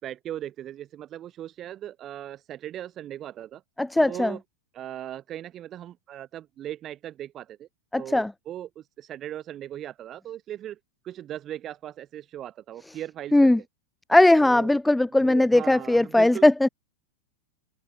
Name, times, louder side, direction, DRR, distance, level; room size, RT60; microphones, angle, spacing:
voice 1, 0.0-3.6 4.0-4.4 4.7-7.7 7.9-10.8 11.0-13.5 14.4-14.7 15.2-16.5, right 11 dB, 30° right, 2.7 m, -38 dB
voice 2, 3.8-4.4 7.9-8.3 13.3-13.6 14.1-16.7, left 1 dB, 5° left, 0.5 m, -19 dB
open air
figure-of-eight pair, 90°, 0 cm